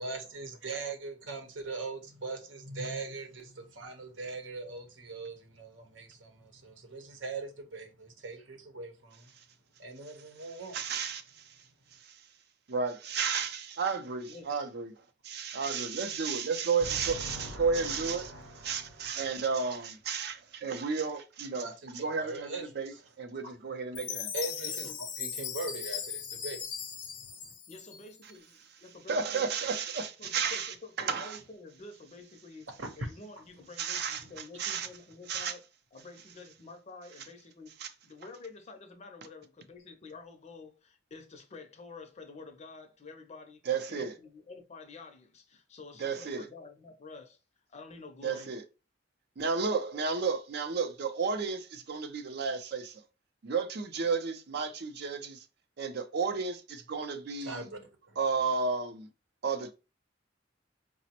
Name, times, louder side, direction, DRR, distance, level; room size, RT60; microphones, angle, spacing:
voice 1, 0.0-9.3 9.8-10.8 14.5-14.6 16.8-19.2 21.6-23.0 24.3-26.6 27.2-27.5 32.8-32.9 57.4-58.2, right 3 dB, 90° right, 0.8 m, -41 dB
voice 2, 10.7-11.6 11.9-12.2 12.7-14.9 15.2-24.3 29.1-31.4 33.8-34.2 34.6-34.9 35.3-35.5 37.8-37.9 43.7-44.2 46.0-46.5 48.2-48.6 49.4-53.0 53.4-55.4 55.8-57.7 58.2-59.1 59.4-59.7, right 5 dB, 60° right, 0.5 m, -32 dB
Chime, 23.9-28.3, left 7 dB, 85° left, 0.7 m, -38 dB
voice 3, 24.6-25.0 27.7-29.5 30.2-32.7 33.0-35.6 35.9-37.8 38.0-47.4 47.7-48.6, left 3 dB, 35° left, 0.5 m, -49 dB
4.9 x 2.0 x 2.8 m
head